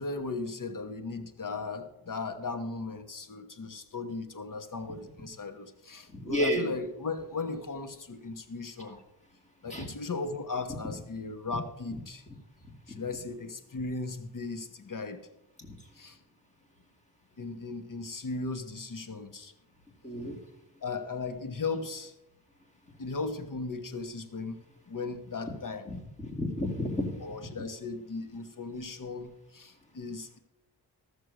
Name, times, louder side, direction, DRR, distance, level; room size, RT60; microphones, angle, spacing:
voice 1, 0.0-9.0 9.6-12.2 12.9-15.2 15.9-16.2 17.4-19.5 20.8-22.1 23.0-25.9 27.2-30.4, left 3 dB, 50° left, 7 dB, 1.2 m, -37 dB
voice 2, 6.1-6.7 9.7-9.9 15.6-15.7 20.0-20.4 26.2-27.3, left 1 dB, 15° left, 2 dB, 2.3 m, -31 dB
14.0 x 6.6 x 6.4 m, 0.91 s
wide cardioid pair, 95°, 40 cm